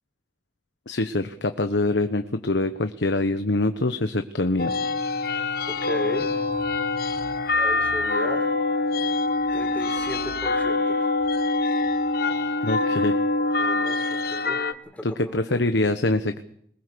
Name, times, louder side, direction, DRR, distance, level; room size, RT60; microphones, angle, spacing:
voice 1, 0.9-4.7 12.6-13.1 15.0-16.4, left 2 dB, 75° left, 9 dB, 1.1 m, -24 dB
sound 1, 4.6-14.7, left 3 dB, 55° left, 1.2 m, -25 dB
voice 2, 5.7-6.5 7.6-8.5 9.5-11.0 13.6-14.0 14.2-14.6 14.8-15.6, equal, 10° left, 2 dB, 4.1 m, -35 dB
22.5 x 20.5 x 6.9 m, 0.66 s
head